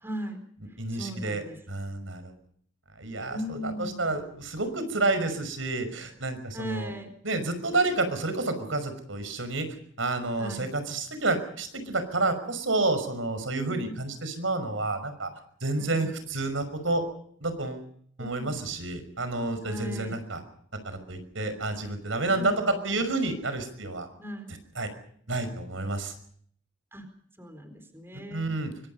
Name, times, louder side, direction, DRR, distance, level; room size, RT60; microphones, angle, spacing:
voice 1, 0.0-0.4 0.9-1.6 3.3-4.1 6.5-7.1 10.4-10.7 13.5-14.0 15.8-16.1 18.2-18.5 19.6-20.2 22.3-22.5 24.2-24.5 26.9-27.1 27.4-28.5, equal, 10° right, 8 dB, 4.2 m, -37 dB
voice 2, 0.8-2.3 3.0-6.9 7.2-9.7 10.0-15.3 15.6-17.0 17.4-17.8 18.2-20.4 20.8-24.1 24.8-24.9 25.3-26.1 28.3-28.7, right 2 dB, 80° right, 9 dB, 5.7 m, -29 dB
25.0 x 25.0 x 5.5 m, 0.62 s
head